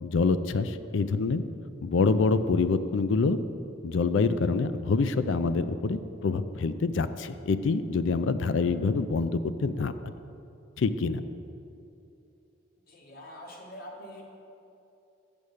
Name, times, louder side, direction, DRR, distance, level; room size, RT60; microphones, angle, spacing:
voice 1, 0.0-1.4 1.8-3.4 3.8-9.9 10.8-11.2, left 4 dB, 65° left, 12 dB, 0.4 m, -26 dB
voice 2, 12.9-14.2, equal, 45° left, 0 dB, 1.3 m, -44 dB
7.0 x 6.5 x 6.4 m, 2.7 s
head